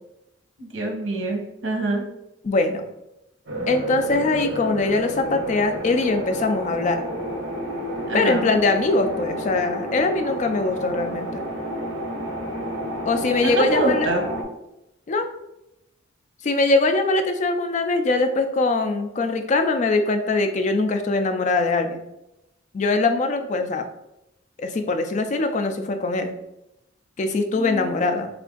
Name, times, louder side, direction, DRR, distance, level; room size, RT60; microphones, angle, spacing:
voice 1, 0.6-2.1 8.1-8.5 13.4-14.2 27.6-28.0, right 2 dB, 80° right, 2 dB, 0.9 m, -25 dB
voice 2, 2.4-2.8 3.7-7.0 8.1-11.4 13.1-14.1 15.1-15.3 16.4-22.0 22.7-23.9 24.6-26.3 27.2-28.3, left 3 dB, 35° left, 7 dB, 0.3 m, -22 dB
sound 1, 3.5-14.4, equal, 60° right, 1.3 m, -30 dB
3.4 x 2.5 x 3.8 m, 0.88 s
head